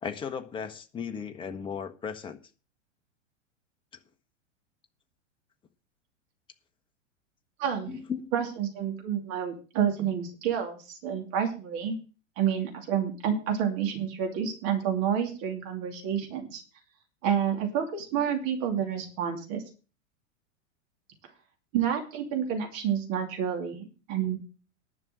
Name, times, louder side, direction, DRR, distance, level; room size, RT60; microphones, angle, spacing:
voice 1, 0.0-2.4 7.9-8.5, left 7 dB, 15° left, 1.0 m, -36 dB
voice 2, 7.6-7.9 8.3-12.0 12.4-16.6 17.2-19.6 21.7-24.4, right 8 dB, 40° right, 2.8 m, -29 dB
11.0 x 6.1 x 7.7 m
figure-of-eight pair, 95°, 37 cm